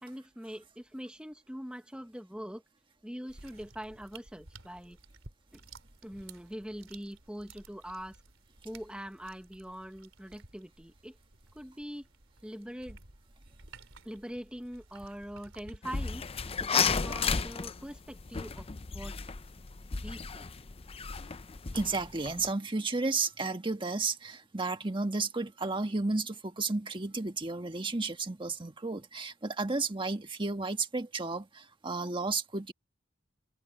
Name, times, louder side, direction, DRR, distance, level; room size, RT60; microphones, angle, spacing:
voice 1, 0.0-2.6 3.0-5.0 5.5-5.6 6.0-8.2 8.6-11.2 11.5-12.1 12.4-13.0 14.0-16.2 16.6-19.2 19.9-20.5, equal, 5° right, 1.4 m, -43 dB
sound 1, 3.3-15.8, right 3 dB, 75° right, 3.4 m, -55 dB
sound 2, 15.8-22.5, left 5 dB, 30° left, 0.6 m, -33 dB
voice 2, 21.7-32.7, right 3 dB, 25° right, 1.6 m, -32 dB
open air
head